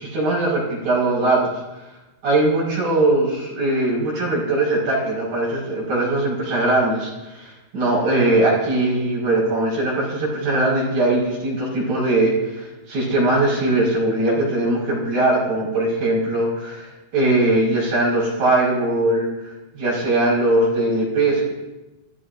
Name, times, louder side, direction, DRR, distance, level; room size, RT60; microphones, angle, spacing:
voice 1, 0.0-1.6 2.2-16.9 17.1-19.3 19.8-21.5, right 2 dB, 85° right, -4 dB, 7.0 m, -20 dB
26.5 x 15.0 x 2.6 m, 1.0 s
omnidirectional pair, 4.0 m